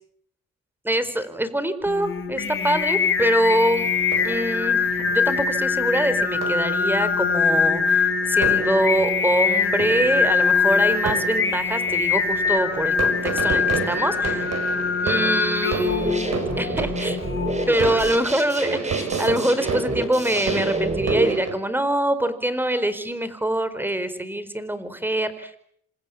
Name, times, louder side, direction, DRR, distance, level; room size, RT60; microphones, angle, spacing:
voice 1, 0.8-3.9 4.2-14.5 15.0-16.3 16.6-17.2 17.7-25.5, right 1 dB, 5° right, 13 dB, 4.7 m, -24 dB
Singing, 1.9-18.1, left 5 dB, 40° left, 5.1 m, -23 dB
sound 1, 3.7-21.5, right 5 dB, 60° right, 5.7 m, -32 dB
sound 2, 15.9-21.3, right 2 dB, 25° right, 7.5 m, -28 dB
29.0 x 26.5 x 7.4 m, 0.67 s
cardioid pair, 90°, 30 cm